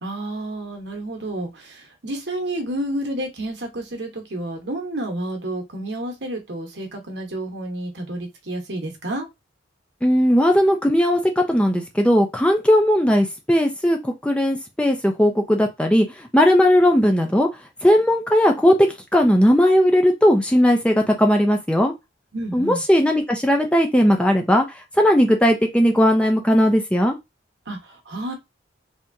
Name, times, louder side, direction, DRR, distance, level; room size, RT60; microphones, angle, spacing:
voice 1, 0.0-9.3 22.3-22.8 27.7-28.3, right 1 dB, 65° right, 3 dB, 1.1 m, -30 dB
voice 2, 10.0-11.2 11.5-16.1 16.3-17.5 17.8-21.9 22.5-24.6 25.0-27.2, equal, 5° left, 3 dB, 0.5 m, -17 dB
3.5 x 2.9 x 2.6 m, 0.21 s
head